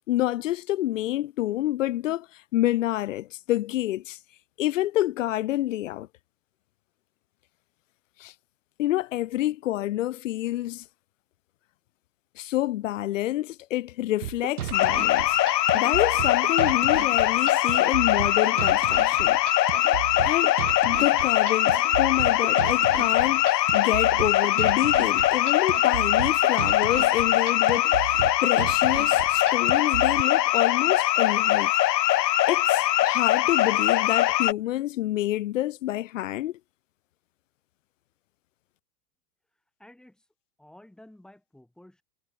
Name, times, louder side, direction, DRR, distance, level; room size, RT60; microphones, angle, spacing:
voice 1, 0.1-4.2 4.6-6.1 8.2-8.3 8.8-10.8 12.3-15.4 15.7-19.4 20.2-20.5 20.8-31.7 32.5-36.6, left 14 dB, 50° left, 1.5 m, -28 dB
sound 1, 14.2-30.2, right 12 dB, 65° right, 6.5 m, -34 dB
sound 2, 14.7-34.5, left 14 dB, 90° left, 0.8 m, -22 dB
voice 2, 39.5-40.3 40.6-42.0, left 1 dB, ahead, 5.9 m, -53 dB
supercardioid pair, 170°, 48 cm